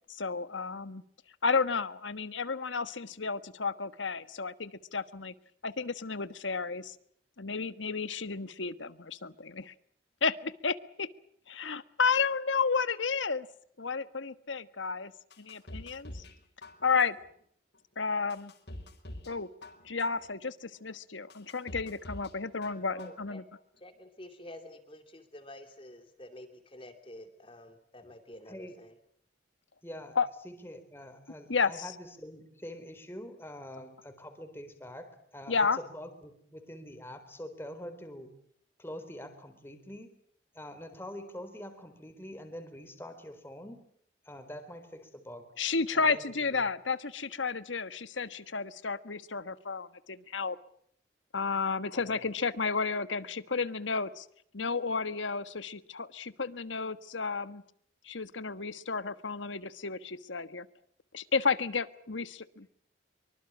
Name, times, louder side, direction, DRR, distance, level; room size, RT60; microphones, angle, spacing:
voice 1, 0.1-1.0 1.4-5.3 5.6-6.9 7.4-9.7 10.2-11.1 11.5-13.5 13.8-15.1 15.4-16.2 16.8-17.2 18.0-18.5 19.3-19.5 19.8-23.4 30.1-30.3 31.5-31.7 35.5-35.8 45.6-50.6 51.3-54.2 54.5-57.6 58.0-60.7 61.1-62.7, left 5 dB, 90° left, 13 dB, 1.4 m, -32 dB
sound 1, 15.3-16.4 16.6-17.2 17.7-17.8 18.3-19.3 19.6-20.2 20.7-20.8 21.3-22.3 22.6-23.2 23.6-23.7, left 1 dB, 60° left, 4.9 m, -45 dB
voice 2, 22.9-23.4 23.8-28.9, left 1 dB, 30° left, 8 dB, 2.8 m, -49 dB
voice 3, 29.8-30.2 30.4-38.3 38.8-40.1 40.5-43.8 44.2-45.5 45.9-46.7 51.9-52.2, equal, 15° left, 8 dB, 4.1 m, -45 dB
25.0 x 24.5 x 7.4 m, 0.66 s
head